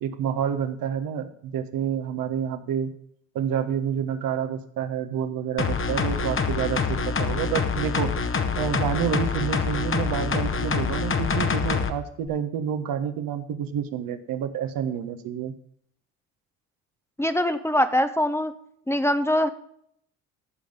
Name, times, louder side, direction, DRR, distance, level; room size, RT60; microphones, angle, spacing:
voice 1, 0.0-2.9 3.3-8.1 8.6-15.5, right 8 dB, 60° right, 8 dB, 1.3 m, -28 dB
sound 1, 5.6-11.9 12.3-12.4, left 5 dB, 35° left, 1.4 m, -26 dB
voice 2, 17.2-18.5 18.9-19.5, equal, 5° left, 9 dB, 1.0 m, -23 dB
15.0 x 5.3 x 5.1 m, 0.68 s
hypercardioid pair, 60°, 38 cm